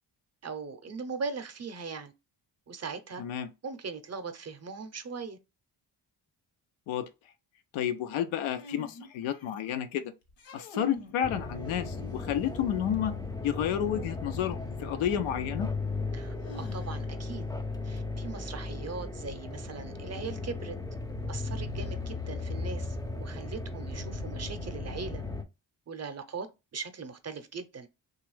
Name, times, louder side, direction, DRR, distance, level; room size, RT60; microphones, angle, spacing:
voice 1, 0.4-2.1 2.7-3.2 3.6-5.4 16.1-17.4 17.8-20.7 21.3-25.2 25.9-26.5 26.7-27.9, right 5 dB, 35° right, 0.6 m, -39 dB
voice 2, 3.2-3.5 6.9-7.1 7.7-10.1 10.5-13.1 13.4-15.7, left 10 dB, 90° left, 0.6 m, -31 dB
sound 1, 8.5-9.7 10.3-11.2 11.6-12.6 14.5-14.6 16.4-17.3, equal, 70° left, 1.0 m, -45 dB
sound 2, 11.2-25.4, left 3 dB, 10° left, 0.4 m, -36 dB
2.9 x 2.4 x 3.1 m
cardioid pair, 65°, 47 cm